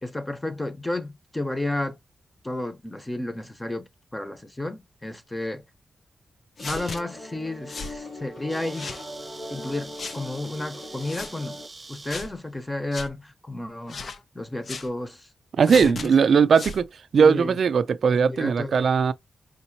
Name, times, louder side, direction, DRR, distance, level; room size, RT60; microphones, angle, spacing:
voice 1, 0.0-2.0 2.4-5.6 6.6-8.9 9.5-11.6 11.9-14.0 14.3-15.3 15.7-16.1 17.2-17.6 18.2-18.7, left 2 dB, 15° left, 0.9 m, -32 dB
sound 1, 6.6-11.7, left 1 dB, 80° left, 2.9 m, -40 dB
sound 2, 6.6-7.0 7.7-8.0 8.7-9.0 10.0-10.2 11.0-11.3 12.1-12.3 12.9-13.1 13.9-14.2 14.6-14.9 15.7-16.1 16.5-16.8, left 4 dB, 65° left, 0.6 m, -35 dB
sound 3, 6.6-7.0 7.6-7.8 8.0-8.1 8.3-12.3, right 3 dB, 40° right, 0.8 m, -44 dB
voice 2, 15.6-16.9 17.1-19.1, right 6 dB, 80° right, 0.4 m, -19 dB
5.0 x 2.7 x 2.8 m
wide cardioid pair, 105°, 0 cm